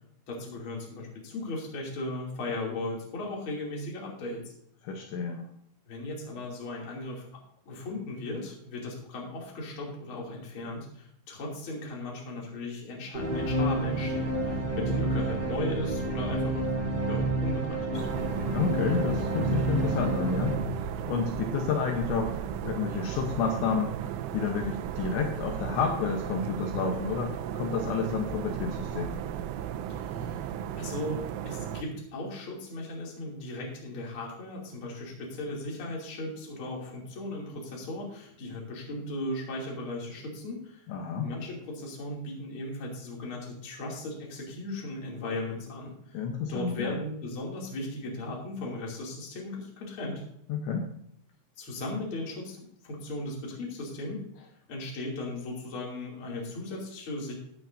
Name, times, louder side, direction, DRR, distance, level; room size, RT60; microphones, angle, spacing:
voice 1, 0.3-4.4 5.9-7.3 7.7-16.8 17.1-18.1 29.9-40.9 41.2-46.2 46.5-50.2 51.6-52.6 52.8-54.2 54.7-57.3, left 2 dB, 35° left, -2 dB, 2.6 m, -37 dB
voice 2, 4.8-5.5 18.5-20.6 21.1-22.4 22.6-24.0 24.3-29.2 40.9-41.3 46.1-47.0 50.5-50.9, left 5 dB, 75° left, 3 dB, 3.0 m, -30 dB
sound 1, 13.1-21.6, right 2 dB, 50° right, 5.9 m, -29 dB
sound 2, 17.9-31.8, right 10 dB, 90° right, 3.2 m, -35 dB
14.5 x 9.5 x 2.6 m, 0.72 s
omnidirectional pair, 5.7 m